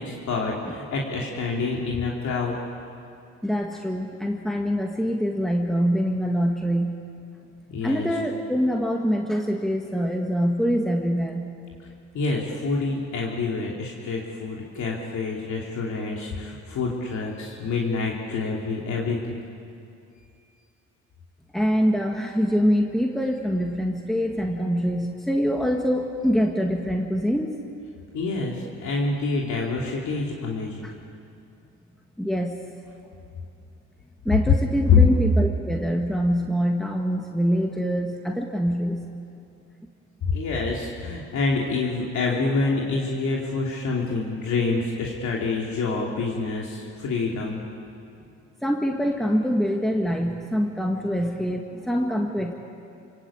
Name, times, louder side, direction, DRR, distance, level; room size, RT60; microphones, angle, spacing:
voice 1, 0.0-2.5 7.7-8.1 11.8-11.9 12.1-19.4 28.1-30.9 34.9-35.0 40.3-47.6, left 4 dB, 70° left, -2 dB, 3.1 m, -26 dB
voice 2, 3.4-7.0 7.8-11.5 21.5-27.6 30.8-30.9 32.2-32.6 34.2-39.1 48.6-52.5, equal, ahead, 1 dB, 1.7 m, -24 dB
28.0 x 17.5 x 8.7 m, 2.6 s
cardioid pair, 90°, 30 cm